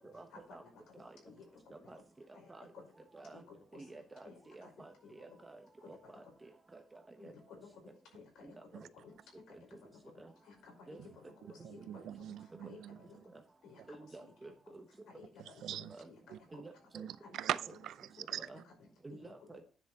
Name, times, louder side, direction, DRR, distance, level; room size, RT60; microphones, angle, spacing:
voice 1, 0.0-2.0 2.3-2.9 3.3-3.9 4.2-4.7 5.0-5.4 5.8-5.9 6.2-6.3 7.2-9.1 9.5-10.1 10.4-13.2 13.6-14.3 14.7-15.6 16.1-16.6 17.2-17.3 18.3-19.7, left 5 dB, 90° left, 5.1 m, -57 dB
voice 2, 3.7-5.6 5.9-6.8 7.2-7.3 8.4-8.5 10.2-10.3 10.9-11.0 13.3-13.4 13.9-14.8 16.0-16.1 16.5-17.1 18.4-18.6 19.0-19.6, right 2 dB, 15° right, 1.1 m, -51 dB
voice 3, 11.6-13.0 15.6-15.9 16.3-16.4 16.9-18.4, right 11 dB, 75° right, 0.5 m, -41 dB
10.5 x 6.4 x 4.2 m
cardioid pair, 125°, 0 cm